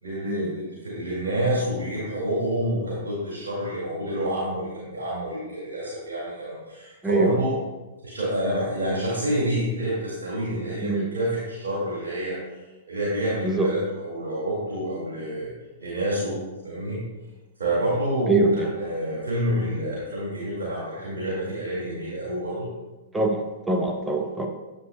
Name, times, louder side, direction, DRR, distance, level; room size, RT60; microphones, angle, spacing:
voice 1, 0.0-7.6 8.0-15.5 15.8-16.4 16.6-17.0 17.6-22.7, right 1 dB, 80° right, -6 dB, 2.2 m, -28 dB
voice 2, 7.0-7.4 10.8-11.1 13.4-13.7 18.3-18.7 23.1-24.5, right 3 dB, 10° right, 2 dB, 0.7 m, -23 dB
9.2 x 7.0 x 2.3 m, 1.1 s
hypercardioid pair, 115°, 0 cm